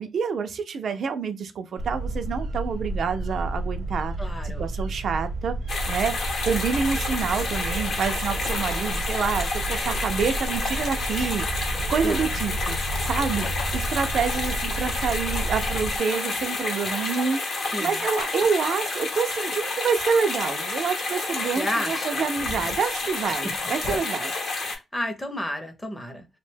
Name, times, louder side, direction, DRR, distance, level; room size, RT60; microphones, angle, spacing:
voice 1, 0.0-4.1 4.6-5.6 5.9-6.1 6.4-12.8 13.0-17.4 17.8-24.3, right 6 dB, 55° right, 0.3 m, -27 dB
sound 1, 1.8-16.0, right 2 dB, 80° right, 0.7 m, -31 dB
voice 2, 4.2-4.7 12.0-12.3 17.7-18.0 21.6-22.3 23.4-23.5 24.5-26.3, equal, 10° left, 0.6 m, -32 dB
sound 2, 5.7-24.8, left 3 dB, 50° left, 0.8 m, -30 dB
sound 3, 8.4-8.9 10.2-10.3 11.8-12.2 13.4-13.8 14.2-14.3 15.7-16.9 18.2-18.8 19.8-19.9 20.0-20.2 21.2-21.8 22.2-24.0, left 3 dB, 85° left, 0.6 m, -39 dB
2.6 x 2.1 x 3.2 m
cardioid pair, 140°, 0 cm